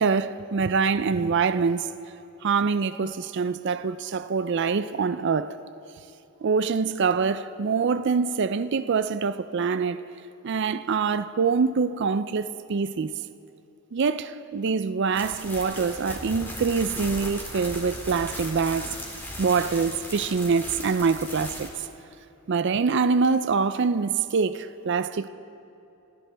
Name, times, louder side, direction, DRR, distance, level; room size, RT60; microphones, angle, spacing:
voice 1, 0.0-1.9 2.4-5.6 6.4-10.0 10.4-13.1 13.9-18.9 19.4-21.7 22.5-25.3, right 5 dB, 55° right, 0.4 m, -25 dB
Bubble Wrap Crinkle, 15.1-21.7, equal, 10° left, 2.2 m, -37 dB
29.5 x 14.0 x 3.4 m
head